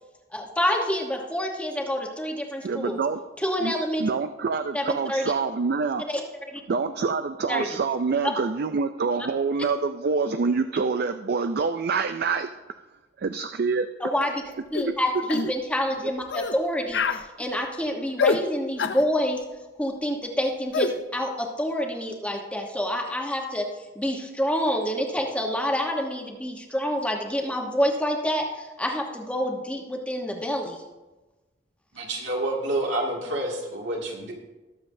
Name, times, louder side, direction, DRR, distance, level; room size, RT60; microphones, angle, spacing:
voice 1, 0.3-3.0 3.4-4.1 4.7-5.3 6.1-6.2 6.5-6.6 7.5-7.7 8.2-8.3 14.0-14.4 14.7-19.4 19.8-23.7 23.9-30.8, equal, 5° left, 1 dB, 1.1 m, -27 dB
voice 2, 2.6-3.2 3.6-3.7 4.0-6.0 6.7-12.5 13.2-13.9, right 4 dB, 55° right, 9 dB, 0.4 m, -26 dB
sound 1, 14.7-14.9 15.3-15.5 16.3-16.6 16.9-17.2 18.2-18.4 18.8-19.0 20.7-20.9, left 5 dB, 65° left, 0.6 m, -25 dB
voice 3, 31.9-34.3, right 1 dB, 75° right, -2 dB, 2.3 m, -28 dB
20.0 x 7.2 x 2.7 m, 1.1 s
head